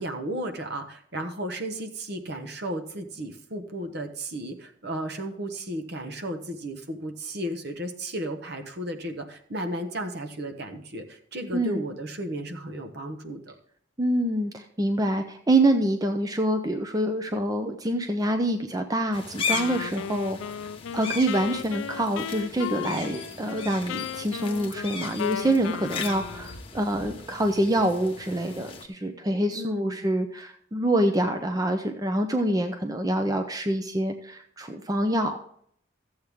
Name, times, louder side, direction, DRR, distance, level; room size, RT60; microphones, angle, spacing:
voice 1, 0.0-13.5 29.5-30.0, right 1 dB, 55° right, 5 dB, 1.2 m, -34 dB
voice 2, 11.5-11.8 14.0-20.4 20.9-35.4, right 1 dB, 20° right, 6 dB, 0.6 m, -26 dB
sound 1, 19.1-28.9, left 5 dB, 30° left, 1.1 m, -37 dB
Wind instrument woodwind instrument, 19.5-26.6, left 8 dB, 75° left, 0.3 m, -36 dB
13.5 x 7.9 x 3.5 m, 0.66 s
head